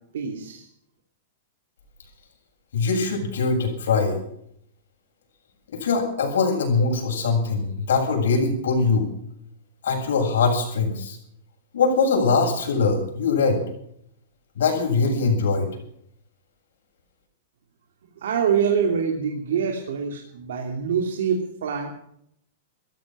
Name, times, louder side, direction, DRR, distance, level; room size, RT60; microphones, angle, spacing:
voice 1, 0.1-0.7 18.2-21.9, right 7 dB, 75° right, 1 dB, 2.9 m, -25 dB
voice 2, 2.7-4.2 5.8-9.1 9.8-11.2 11.7-13.6 14.5-15.7, left 4 dB, 90° left, 2 dB, 7.7 m, -22 dB
15.5 x 14.5 x 6.2 m, 0.71 s
supercardioid pair, 175°, 0 cm